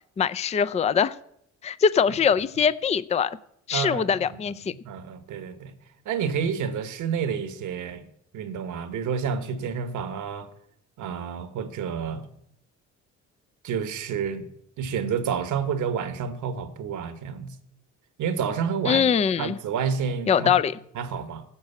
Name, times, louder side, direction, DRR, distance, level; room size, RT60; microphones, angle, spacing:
voice 1, 0.2-1.2 1.6-3.4 3.7-4.7 18.9-19.6 20.3-20.8, left 7 dB, 20° left, 16 dB, 0.4 m, -22 dB
voice 2, 3.7-4.3 4.8-5.7 6.0-8.0 8.3-10.5 11.0-12.3 13.6-14.5 14.8-17.5 18.2-19.0 19.4-20.5 20.9-21.4, right 7 dB, 80° right, 10 dB, 1.3 m, -29 dB
11.5 x 6.3 x 8.3 m, 0.72 s
cardioid pair, 90°, 30 cm